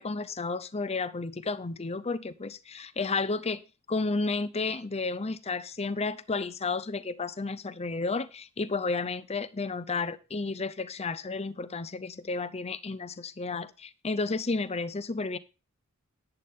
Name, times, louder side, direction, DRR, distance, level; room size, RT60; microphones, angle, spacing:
voice 1, 0.0-3.6 3.9-15.4, left 3 dB, 30° left, 0.7 m, -32 dB
11.0 x 9.1 x 3.7 m
head